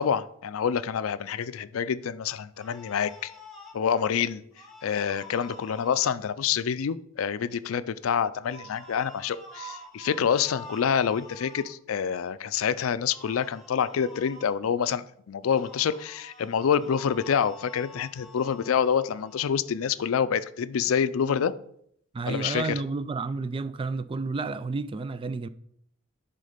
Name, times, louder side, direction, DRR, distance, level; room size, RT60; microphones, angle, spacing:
voice 1, 0.0-3.3 3.7-4.4 4.8-21.5 22.3-22.6, left 7 dB, 80° left, 0.4 m, -27 dB
sound 1, 2.5-3.8 4.5-6.1 8.4-11.7 13.0-14.5 15.5-19.6, left 1 dB, ahead, 1.5 m, -47 dB
voice 2, 22.1-25.5, right 3 dB, 25° right, 0.3 m, -31 dB
10.5 x 3.8 x 5.1 m
head